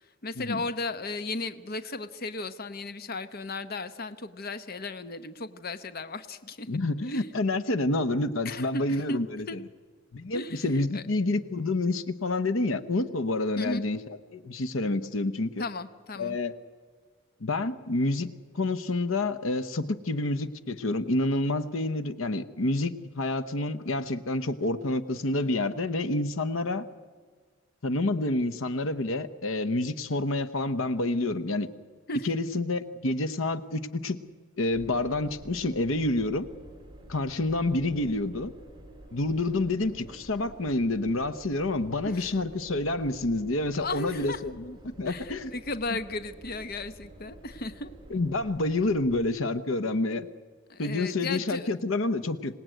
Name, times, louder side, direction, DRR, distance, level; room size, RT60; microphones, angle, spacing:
voice 1, 0.0-6.7 7.0-7.3 8.4-9.2 9.5-9.6 10.3-11.0 13.6-13.8 15.6-16.4 32.1-32.3 42.1-42.3 43.8-44.4 45.0-47.9 50.7-51.7, left 3 dB, 50° left, 11 dB, 0.9 m, -35 dB
voice 2, 6.7-9.4 10.1-14.0 14.3-15.6 16.2-16.5 17.4-18.3 18.5-26.8 27.8-31.7 32.2-34.2 34.6-36.5 37.1-38.5 39.1-45.4 48.1-50.3 50.8-52.6, left 2 dB, 75° left, 13 dB, 1.0 m, -28 dB
sound 1, 34.7-49.3, right 1 dB, 20° right, 4.3 m, -49 dB
26.0 x 18.5 x 9.2 m, 1.5 s
head